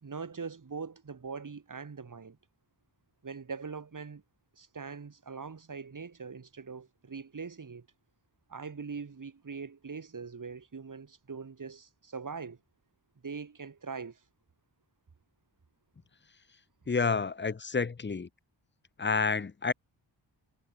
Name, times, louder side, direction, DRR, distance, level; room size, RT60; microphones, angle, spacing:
voice 1, 0.0-2.4 3.2-4.2 4.6-7.9 8.5-12.6 13.2-14.2, right 5 dB, 45° right, 3.3 m, -42 dB
voice 2, 16.9-18.3 19.0-19.7, left 5 dB, 25° left, 0.7 m, -29 dB
wide cardioid pair, 120°, 45 cm